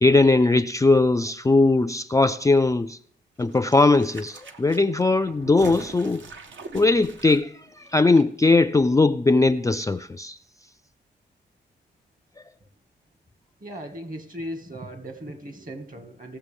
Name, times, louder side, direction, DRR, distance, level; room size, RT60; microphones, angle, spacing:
voice 1, 0.0-3.0 3.4-6.2 6.7-10.4, left 3 dB, 15° left, 0.4 m, -19 dB
sound 1, 3.4-8.2 8.5-8.6, right 4 dB, 75° right, 1.0 m, -43 dB
voice 2, 13.6-16.4, equal, 45° right, 1.9 m, -37 dB
18.5 x 7.0 x 3.5 m
cardioid pair, 65°, 20 cm